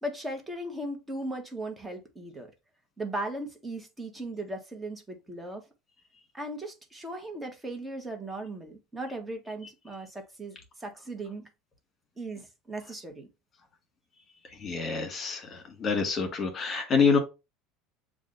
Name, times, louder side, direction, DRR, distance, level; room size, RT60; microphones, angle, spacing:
voice 1, 0.0-2.5 3.0-5.6 6.3-11.5 12.2-13.3, right 1 dB, 15° right, 1.3 m, -37 dB
voice 2, 14.6-17.2, left 5 dB, 35° left, 1.7 m, -26 dB
7.2 x 2.4 x 2.6 m
supercardioid pair, 100°, 0 cm